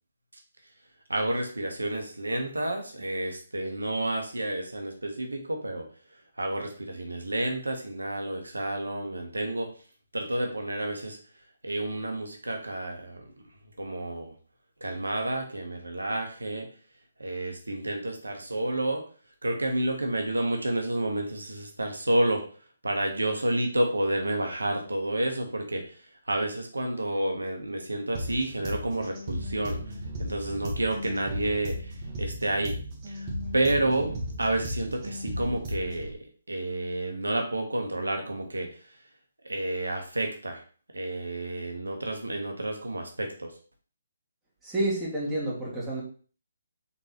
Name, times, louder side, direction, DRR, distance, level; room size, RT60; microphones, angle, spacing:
voice 1, 1.1-5.9 6.4-9.7 10.1-11.2 11.6-13.2 13.8-14.3 14.8-16.7 17.2-19.0 19.4-22.4 22.8-25.8 26.3-29.8 30.2-32.8 33.1-33.3 33.5-38.7 39.4-40.6 40.9-43.5, right 1 dB, 85° right, 3 dB, 0.9 m, -30 dB
sound 1, 28.1-36.1, equal, 30° right, 1.0 m, -35 dB
voice 2, 44.6-46.0, right 1 dB, 10° right, -7 dB, 1.8 m, -29 dB
4.0 x 3.8 x 2.8 m, 0.41 s
figure-of-eight pair, 145°, 0 cm